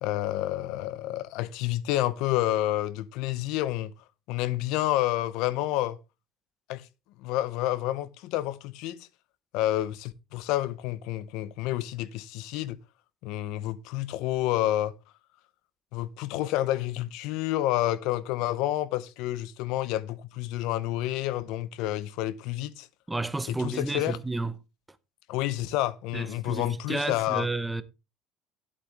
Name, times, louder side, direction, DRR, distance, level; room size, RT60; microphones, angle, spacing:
voice 1, 0.0-3.9 4.3-6.0 6.7-6.9 7.2-9.1 9.5-12.8 13.2-14.9 15.9-22.9 23.5-24.2 25.3-27.5, left 14 dB, 75° left, 0.6 m, -29 dB
voice 2, 23.1-24.5 26.1-27.8, right 2 dB, 10° right, 0.6 m, -31 dB
11.0 x 8.1 x 3.4 m
cardioid pair, 145°, 0 cm